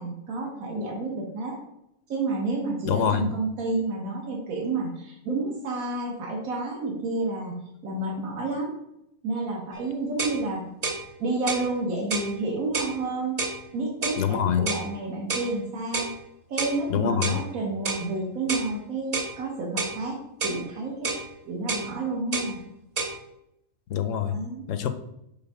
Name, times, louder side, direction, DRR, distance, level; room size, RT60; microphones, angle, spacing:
voice 1, 0.0-1.6 2.1-7.5 7.8-8.7 9.2-10.6 11.2-13.4 13.7-16.1 16.5-21.1 21.5-22.6 24.2-24.6, right 2 dB, 75° right, -1 dB, 1.6 m, -30 dB
voice 2, 2.9-3.3 14.2-14.7 16.9-17.4 23.9-24.4 24.7-24.9, left 8 dB, 70° left, 10 dB, 0.9 m, -25 dB
sound 1, 9.7-9.8 10.2-10.4 10.8-11.0 11.5-11.7 12.1-12.3 12.7-12.9 13.4-13.6 14.0-14.2 14.7-14.9 15.3-15.5 15.9-16.1 16.6-16.8 17.2-17.4 17.8-18.1 18.5-18.7 19.1-19.3 19.8-20.0 20.4-20.6 21.0-21.2 21.7-21.9 22.3-22.5 23.0-23.2, right 3 dB, 40° right, 0.6 m, -29 dB
5.7 x 3.7 x 5.5 m, 0.82 s
omnidirectional pair, 1.5 m